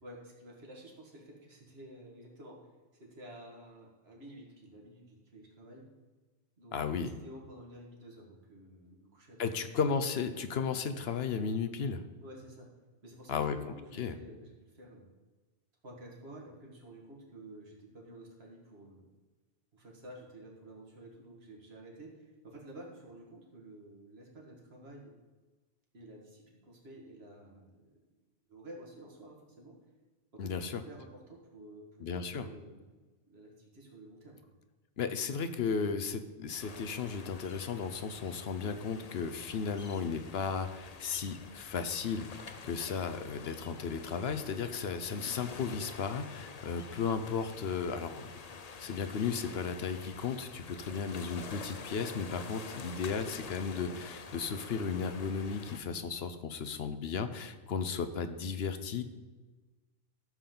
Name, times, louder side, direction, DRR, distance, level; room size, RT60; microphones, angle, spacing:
voice 1, 0.0-2.6 3.0-5.9 6.6-9.6 12.2-12.7 13.0-15.1 15.8-19.0 19.7-25.1 25.9-27.9 28.5-29.7 30.3-32.9 33.3-34.4, right 1 dB, 65° right, -1 dB, 2.3 m, -51 dB
voice 2, 6.7-7.1 9.4-12.0 13.3-13.6 13.9-14.2 30.4-30.8 32.0-32.5 35.0-42.3 42.6-48.3 48.8-59.0, left 6 dB, 65° left, 10 dB, 1.0 m, -35 dB
sound 1, 36.6-55.8, left 5 dB, 40° left, 0.7 m, -48 dB
13.0 x 7.3 x 3.9 m, 1.3 s
omnidirectional pair, 1.1 m